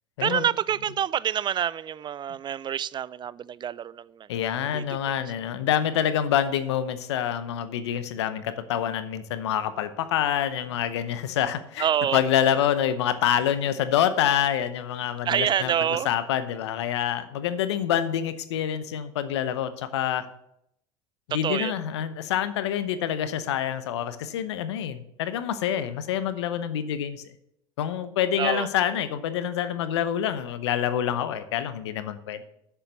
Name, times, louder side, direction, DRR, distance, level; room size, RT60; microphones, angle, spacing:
voice 1, 0.2-4.3 4.6-4.8 11.8-12.2 15.3-16.1 21.4-21.7 28.4-28.7, right 9 dB, 35° right, 0.3 m, -27 dB
voice 2, 4.3-20.3 21.3-27.2 27.8-32.4, left 10 dB, 85° left, 0.8 m, -27 dB
7.2 x 7.0 x 7.0 m
hypercardioid pair, 80°, 14 cm